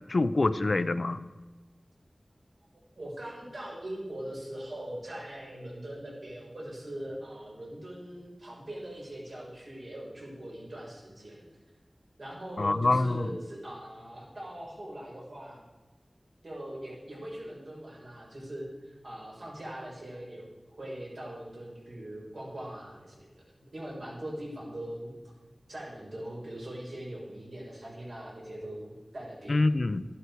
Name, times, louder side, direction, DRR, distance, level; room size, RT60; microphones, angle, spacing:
voice 1, 0.1-1.2 12.6-13.3 29.5-30.0, left 2 dB, 60° left, 14 dB, 0.6 m, -25 dB
voice 2, 2.9-11.5 12.2-15.6 16.4-23.3 23.6-25.1 25.7-29.6, right 1 dB, 70° right, -4 dB, 5.1 m, -41 dB
13.5 x 11.5 x 4.7 m, 1.3 s
wide cardioid pair, 70°, 0 cm